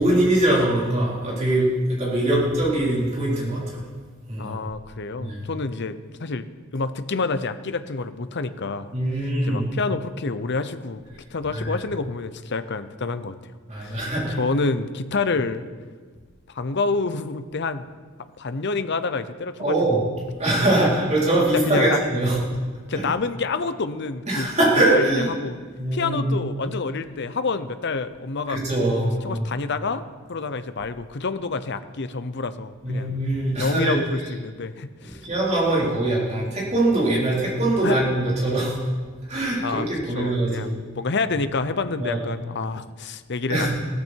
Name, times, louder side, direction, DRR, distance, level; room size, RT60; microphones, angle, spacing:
voice 1, 0.0-3.9 4.3-4.6 5.2-5.4 8.9-9.6 11.5-11.7 13.7-14.4 19.6-20.0 20.4-22.4 22.9-23.0 24.3-25.3 25.8-26.4 28.5-29.4 32.8-34.0 35.0-38.8 39.3-40.9 42.0-42.2 43.5-43.7, right 1 dB, 35° right, -5 dB, 4.4 m, -22 dB
voice 2, 4.4-6.5 6.7-8.9 9.5-11.1 11.3-13.4 13.8-14.0 14.4-15.7 16.5-17.9 18.4-20.0 21.5-22.0 22.9-24.5 24.9-25.6 25.9-28.6 29.2-30.0 30.3-33.1 33.6-35.3 37.8-38.0 39.6-39.9 40.1-43.7, left 4 dB, 55° left, 11 dB, 0.7 m, -28 dB
16.0 x 14.0 x 4.6 m, 1.5 s
head